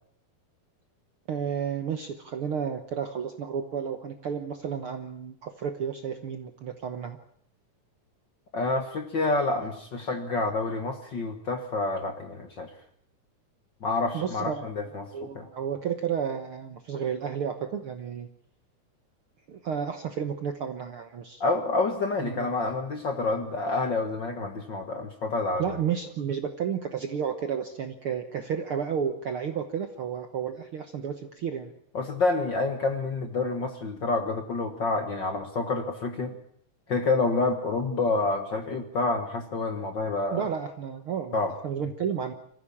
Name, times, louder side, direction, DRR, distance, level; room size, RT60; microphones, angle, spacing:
voice 1, 1.3-7.2 14.1-18.3 19.5-21.4 22.2-22.5 25.6-31.7 40.3-41.4 41.6-42.3, right 7 dB, 60° right, 7 dB, 1.5 m, -32 dB
voice 2, 8.5-12.7 13.8-15.1 15.3-15.4 21.4-25.8 31.9-36.3 36.9-40.5 41.3-41.5, left 3 dB, 45° left, 6 dB, 1.7 m, -28 dB
24.5 x 15.0 x 8.6 m, 0.67 s
omnidirectional pair, 3.8 m